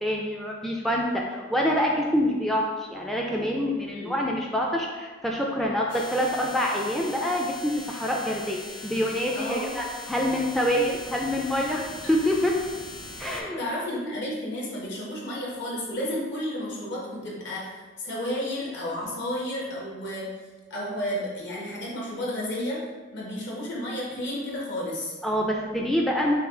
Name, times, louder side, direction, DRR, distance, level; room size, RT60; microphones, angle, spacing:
voice 1, 0.0-11.8 12.1-12.5 13.2-13.6 25.2-26.3, equal, ahead, -1 dB, 0.3 m, -26 dB
sound 1, 5.9-13.4, left 2 dB, 80° left, 1.0 m, -41 dB
voice 2, 9.3-9.7 13.6-20.3 20.7-22.8 23.1-25.1, left 1 dB, 60° left, -4 dB, 1.3 m, -32 dB
5.4 x 2.3 x 3.7 m, 1.3 s
head